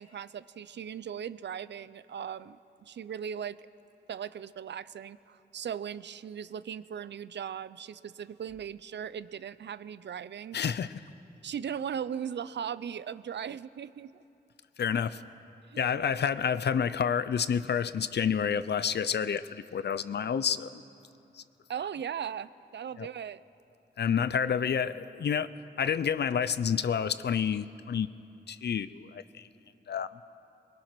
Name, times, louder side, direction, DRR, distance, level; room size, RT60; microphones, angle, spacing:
voice 1, 0.0-3.7 4.1-10.8 11.4-14.2 15.7-16.2 21.7-23.4, right 8 dB, 85° right, 17 dB, 0.5 m, -38 dB
voice 2, 10.5-10.9 14.8-15.2 15.8-20.8 21.4-21.5 23.0-23.1 24.0-25.5 25.8-28.1 28.5-29.5 29.9-30.1, left 7 dB, 70° left, 15 dB, 0.6 m, -29 dB
23.0 x 22.0 x 6.0 m, 2.9 s
wide cardioid pair, 150°, 18 cm